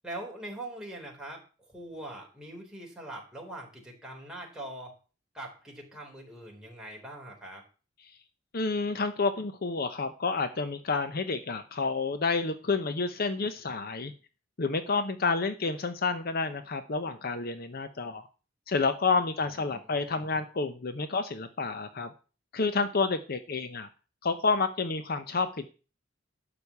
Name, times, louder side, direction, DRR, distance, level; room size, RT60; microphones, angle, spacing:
voice 1, 0.0-1.4 1.7-4.9 5.3-7.6 19.7-20.0, right 1 dB, 5° right, -1 dB, 3.8 m, -42 dB
voice 2, 8.5-14.1 14.6-18.3 18.7-22.1 22.5-23.9 24.2-25.7, left 4 dB, 50° left, 10 dB, 0.8 m, -29 dB
12.0 x 5.1 x 8.2 m, 0.35 s
head